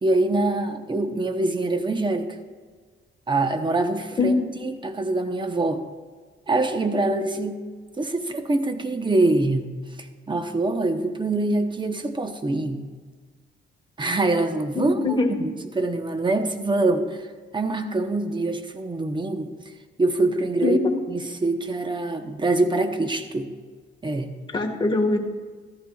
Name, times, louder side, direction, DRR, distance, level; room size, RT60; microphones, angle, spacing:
voice 1, 0.0-2.4 3.3-4.3 4.6-5.8 6.5-7.6 8.0-12.8 14.0-17.3 17.5-19.5 20.0-20.8 21.1-23.5 24.0-24.3, right 2 dB, 20° right, 7 dB, 0.9 m, -24 dB
voice 2, 14.7-15.4 20.6-21.0 24.5-25.2, left 3 dB, 25° left, 1 dB, 1.6 m, -22 dB
14.5 x 13.5 x 2.4 m, 1.5 s
cardioid pair, 100°, 21 cm